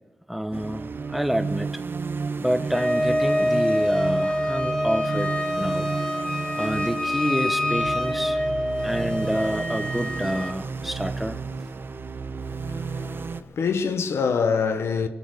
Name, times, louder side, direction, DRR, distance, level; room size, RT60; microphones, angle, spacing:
voice 1, 0.3-1.8 2.4-5.9 6.6-8.4 8.8-11.4, equal, 5° right, 0.9 m, -28 dB
sound 1, 0.5-13.4, right 4 dB, 55° right, 0.8 m, -32 dB
Wind instrument woodwind instrument, 2.7-10.6, left 1 dB, 20° left, 1.9 m, -26 dB
voice 2, 12.6-15.1, left 5 dB, 85° left, 1.0 m, -25 dB
22.0 x 8.7 x 6.5 m
cardioid pair, 65°, 4 cm